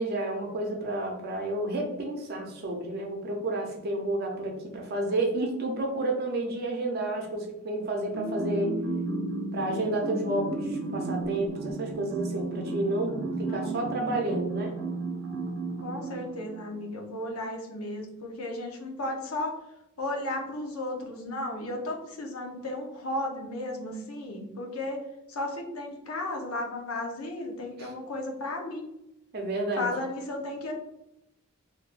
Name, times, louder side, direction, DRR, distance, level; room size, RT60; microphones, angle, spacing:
voice 1, 0.0-8.7 9.5-14.7 27.8-27.9 29.3-29.9, right 2 dB, 45° right, 1 dB, 0.6 m, -30 dB
sound 1, 8.1-16.9, right 2 dB, 85° right, 0.7 m, -33 dB
voice 2, 13.4-13.8 15.8-19.6 20.0-25.0 25.3-28.9 29.8-30.7, left 1 dB, 85° left, 1 dB, 0.8 m, -34 dB
3.4 x 2.7 x 2.5 m, 0.86 s
head